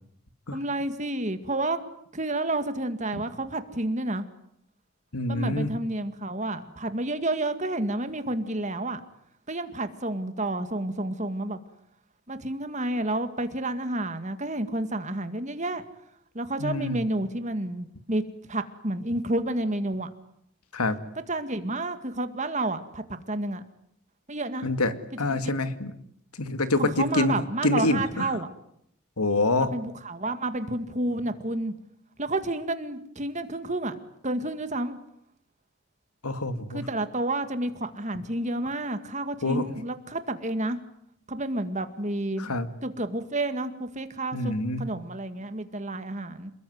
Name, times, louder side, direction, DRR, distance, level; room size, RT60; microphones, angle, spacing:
voice 1, 0.5-1.8 2.1-4.3 5.3-9.0 9.5-11.6 12.3-15.8 16.3-18.2 18.5-20.1 21.3-23.6 24.3-24.7 26.8-28.5 29.6-31.7 32.2-34.0 34.2-35.0 36.7-40.8 41.3-42.5 42.8-46.5, right 2 dB, 30° right, 10 dB, 2.0 m, -30 dB
voice 2, 5.1-5.7 16.6-17.0 20.7-21.0 24.6-25.9 26.4-27.4 27.6-28.3 29.2-29.7 36.2-36.8 39.4-39.7 42.4-42.7 44.3-44.9, left 2 dB, 85° left, 11 dB, 2.2 m, -26 dB
28.5 x 21.0 x 9.5 m, 0.73 s
head